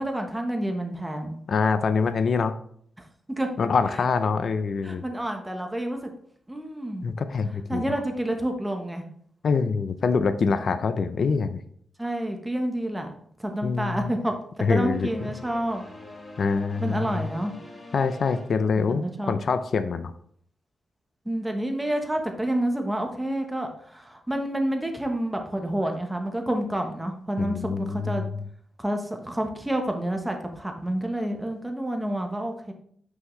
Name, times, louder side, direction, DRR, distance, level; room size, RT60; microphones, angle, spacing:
voice 1, 0.0-1.4 3.4-3.5 4.8-6.0 6.5-7.1 7.7-9.1 12.0-13.1 13.4-14.3 14.7-15.8 16.8-17.5 18.9-19.4 21.2-28.2 28.8-32.7, right 1 dB, 10° right, 4 dB, 1.1 m, -29 dB
voice 2, 1.5-2.5 3.6-5.0 7.0-7.9 9.4-11.6 13.6-14.0 14.6-15.1 16.4-17.2 17.9-20.1 27.4-28.3, left 5 dB, 60° left, 11 dB, 0.6 m, -25 dB
sound 1, 14.9-19.4, left 2 dB, 25° left, 2.8 m, -45 dB
6.2 x 5.7 x 3.2 m, 0.63 s
cardioid pair, 90°, 0 cm